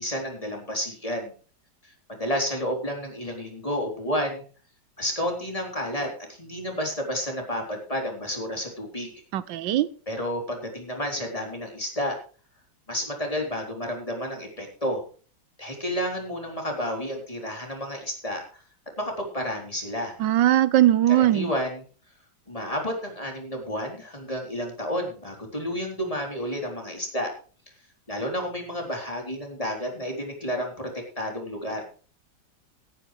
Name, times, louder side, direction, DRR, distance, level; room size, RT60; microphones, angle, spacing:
voice 1, 0.0-1.3 1.8-4.4 5.0-9.1 10.1-12.2 12.9-15.0 15.6-18.4 19.0-20.1 21.1-21.8 22.5-27.3 28.1-31.8, equal, 20° left, 1 dB, 3.9 m, -31 dB
voice 2, 9.3-9.9 20.2-21.5, right 13 dB, 85° right, 17 dB, 1.4 m, -20 dB
17.5 x 10.0 x 3.3 m, 0.39 s
omnidirectional pair, 1.9 m